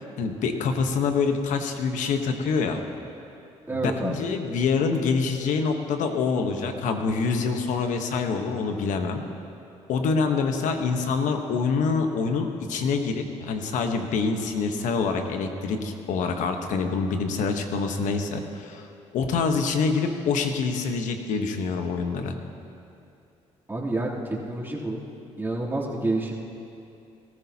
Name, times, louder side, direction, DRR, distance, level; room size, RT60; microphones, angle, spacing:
voice 1, 0.2-2.8 3.7-9.2 9.9-18.8 19.1-22.3, left 5 dB, 75° left, 5 dB, 1.1 m, -26 dB
voice 2, 3.7-4.3 23.7-25.0 25.4-26.4, right 2 dB, 15° right, -6 dB, 3.1 m, -28 dB
18.0 x 14.5 x 2.9 m, 2.7 s
supercardioid pair, 70°, 13 cm